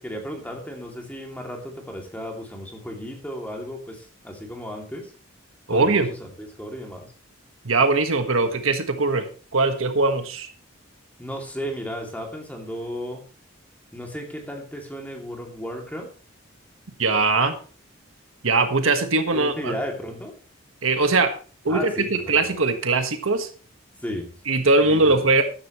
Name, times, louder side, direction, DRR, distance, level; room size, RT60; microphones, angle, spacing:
voice 1, 0.0-5.1 5.7-6.1 6.4-7.0 11.2-13.2 13.9-16.1 19.3-20.3 21.7-22.5 24.0-24.3 24.8-25.2, equal, 10° left, 1 dB, 2.6 m, -34 dB
voice 2, 5.7-6.1 7.6-9.3 9.5-10.5 17.0-17.6 18.4-19.8 20.8-21.3 21.6-23.5 24.4-25.4, right 3 dB, 80° right, 7 dB, 1.5 m, -21 dB
14.0 x 10.5 x 3.1 m, 0.38 s
head